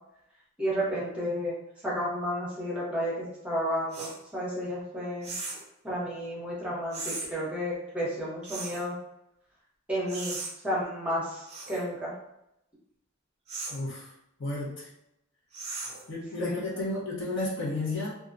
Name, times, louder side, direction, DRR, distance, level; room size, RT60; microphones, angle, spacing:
voice 1, 0.6-1.6 1.8-5.3 5.8-9.0 9.9-10.4 10.6-12.2 16.4-16.6, equal, 5° right, -7 dB, 0.8 m, -32 dB
sound 1, 3.9-4.2 5.2-5.7 6.9-7.3 8.4-8.9 10.1-10.5 11.5-11.8 13.5-13.8 15.5-16.1, right 3 dB, 30° right, 0.5 m, -37 dB
voice 2, 13.7-14.1 14.4-14.9 16.1-18.1, left 2 dB, 65° left, -5 dB, 0.8 m, -32 dB
2.3 x 2.1 x 2.5 m, 0.81 s
head